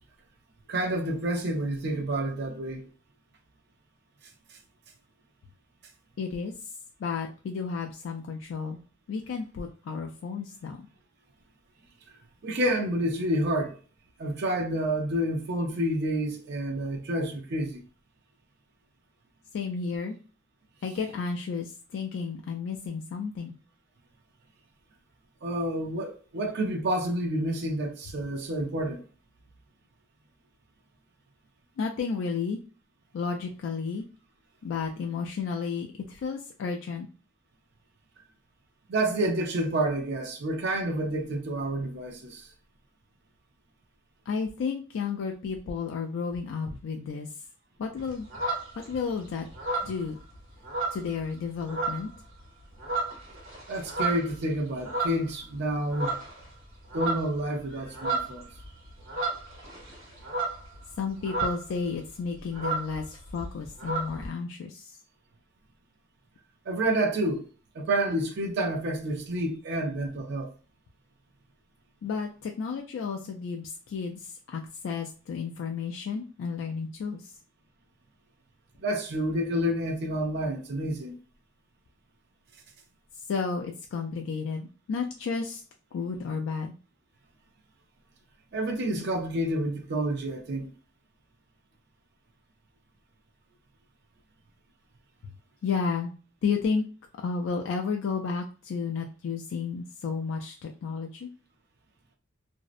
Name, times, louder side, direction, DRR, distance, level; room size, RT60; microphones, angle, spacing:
voice 1, 0.7-2.9 12.4-13.8 14.2-17.8 25.4-29.1 38.9-42.5 53.7-56.2 56.9-58.5 66.7-67.4 67.7-70.5 78.8-81.2 88.5-90.7, right 1 dB, 60° right, 0.5 m, -29 dB
voice 2, 6.2-6.7 7.0-8.8 9.1-10.8 19.5-20.2 20.8-23.5 31.8-32.6 33.1-34.1 34.6-37.1 44.3-47.3 47.8-48.3 48.9-49.5 49.8-50.2 50.9-52.1 61.0-64.9 72.0-77.3 83.3-85.6 85.9-86.7 88.9-89.1 95.6-96.1 96.4-96.8 97.2-101.3, left 5 dB, 80° left, 0.3 m, -32 dB
sound 1, 48.0-49.1 49.5-51.4 51.7-52.2 52.6-55.6 55.9-56.5 56.7-61.8 62.1-62.2 62.4-64.3, right 3 dB, 85° right, 1.0 m, -32 dB
2.6 x 2.0 x 2.4 m
head